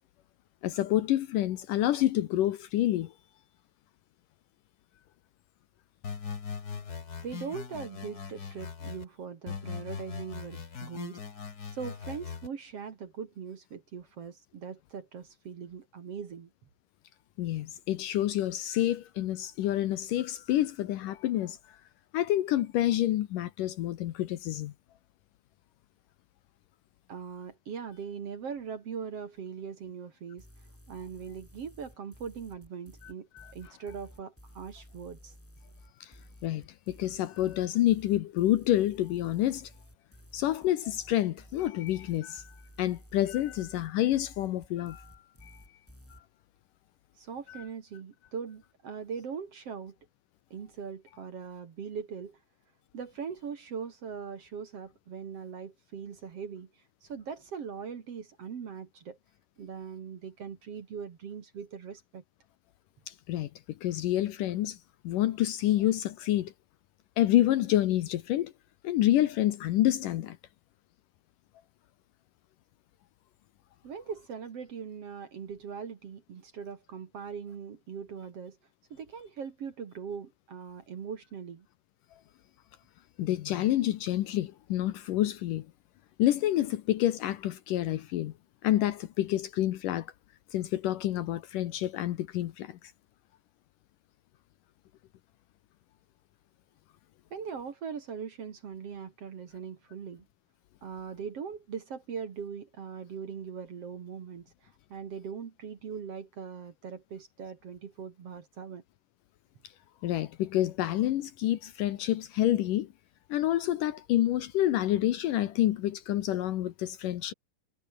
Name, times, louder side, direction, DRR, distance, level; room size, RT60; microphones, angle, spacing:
voice 1, 0.6-3.1 17.4-21.6 22.1-24.7 33.0-33.5 36.0-36.1 36.4-39.7 40.3-42.5 42.8-45.1 45.4-45.6 47.5-47.6 63.1-63.5 63.8-64.8 65.0-66.5 67.2-68.5 68.8-70.4 83.2-85.7 86.2-88.3 88.6-90.1 90.5-92.8 110.0-112.9 113.3-117.3, left 13 dB, 70° left, 2.3 m, -28 dB
sound 1, 6.0-9.0 9.5-12.5, left 6 dB, 40° left, 1.4 m, -40 dB
voice 2, 7.2-11.2 11.7-16.5 27.1-30.5 30.9-35.3 47.2-50.0 50.5-52.4 52.9-56.7 57.0-59.2 59.6-62.2 73.8-78.6 78.9-81.7 97.3-100.3 100.8-104.5 104.9-108.8, right 6 dB, 45° right, 2.4 m, -40 dB
sound 2, 30.4-46.2, equal, 5° left, 6.3 m, -54 dB
omnidirectional pair, 4.4 m